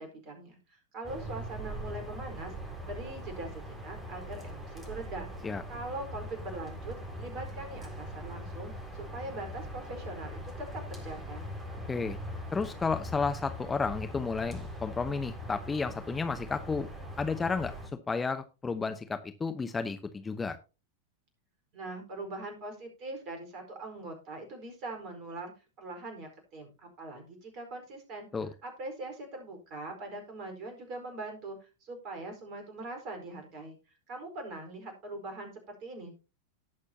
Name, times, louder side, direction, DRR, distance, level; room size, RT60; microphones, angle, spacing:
voice 1, 0.0-5.3 5.7-11.5 21.7-28.3 28.6-33.8 34.1-36.1, right 2 dB, 40° right, 5 dB, 4.5 m, -42 dB
sound 1, 1.0-17.9, equal, 15° right, 4.1 m, -41 dB
voice 2, 12.5-16.9 17.2-17.7 18.1-20.6 28.3-28.5, left 4 dB, 15° left, 8 dB, 0.9 m, -32 dB
18.5 x 6.5 x 2.8 m, 0.31 s
figure-of-eight pair, 90°, 0 cm